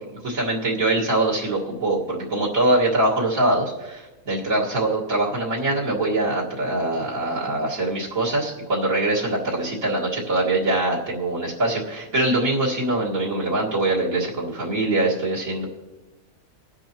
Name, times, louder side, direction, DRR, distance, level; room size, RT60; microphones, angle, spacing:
voice 1, 0.1-15.7, right 2 dB, 75° right, -6 dB, 2.4 m, -23 dB
22.5 x 10.0 x 3.0 m, 1.1 s
omnidirectional pair, 1.4 m